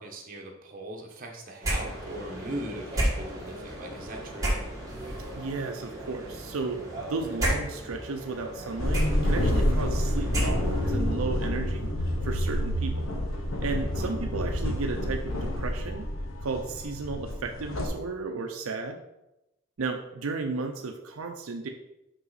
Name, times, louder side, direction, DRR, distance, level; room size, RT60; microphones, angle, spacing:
voice 1, 0.0-4.5 14.0-14.1, right 1 dB, 45° right, 1 dB, 1.1 m, -39 dB
sound 1, 1.6-11.0, right 1 dB, 15° right, 1.8 m, -33 dB
voice 2, 5.3-13.1 13.6-16.0 16.4-19.0 19.8-21.7, right 3 dB, 85° right, 4 dB, 0.6 m, -34 dB
sound 2, 8.8-17.9, left 1 dB, 80° left, 1.2 m, -28 dB
5.6 x 5.5 x 4.1 m, 0.93 s
head